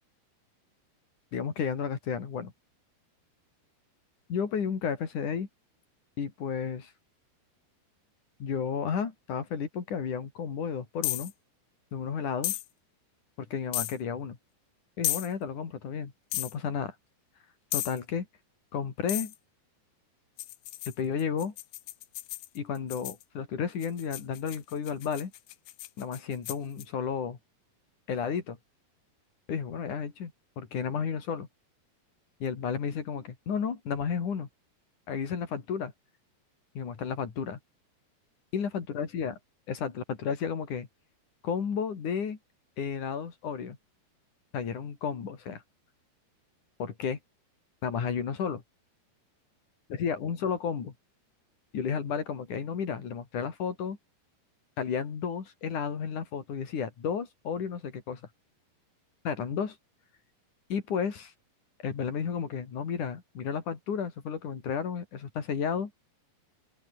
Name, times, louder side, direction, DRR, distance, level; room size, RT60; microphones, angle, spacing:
voice 1, 1.3-2.5 4.3-5.5 6.2-6.9 8.4-11.3 11.9-12.6 13.5-14.4 15.0-16.9 17.7-18.3 18.7-19.3 20.9-21.5 22.5-25.3 26.0-27.4 28.1-28.6 29.5-30.3 30.6-31.5 32.4-34.5 35.1-35.9 36.7-37.6 38.5-39.3 39.7-40.9 41.4-42.4 42.8-43.8 44.5-45.6 46.8-47.2 47.8-48.6 49.9-50.9 51.7-54.0 54.8-58.2 59.2-59.8 60.7-61.3 61.8-65.9, left 7 dB, 50° left, 4.4 m, -32 dB
sound 1, 11.0-11.3 12.4-12.6 13.7-14.0 15.0-15.3 16.3-16.5 17.7-18.0 19.1-19.3 20.4-23.2 23.8-26.8, left 16 dB, 85° left, 3.3 m, -34 dB
open air
omnidirectional pair, 4.8 m